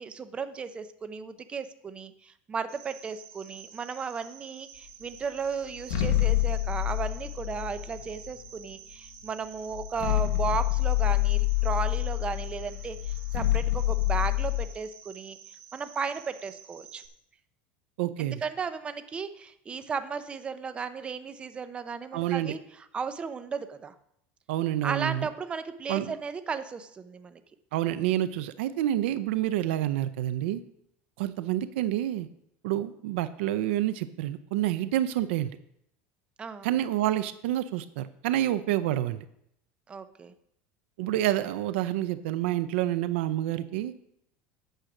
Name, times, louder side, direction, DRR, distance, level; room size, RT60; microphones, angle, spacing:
voice 1, 0.0-15.4 15.7-17.0 18.2-23.9 24.8-27.4 36.4-36.7 39.9-40.3, right 5 dB, 20° right, 11 dB, 0.6 m, -35 dB
Cricket, 2.7-17.1, right 8 dB, 50° right, 2.0 m, -50 dB
sound 1, 5.8-8.5 9.3-9.4 9.7-14.7, left 15 dB, 90° left, 1.1 m, -27 dB
voice 2, 18.0-18.4 22.1-22.5 24.5-25.3 25.9-26.1 27.7-30.6 31.2-32.3 32.6-35.5 36.6-39.3 41.0-43.9, right 13 dB, 90° right, 13 dB, 0.5 m, -28 dB
9.0 x 6.4 x 6.0 m, 0.75 s
cardioid pair, 155°, 6 cm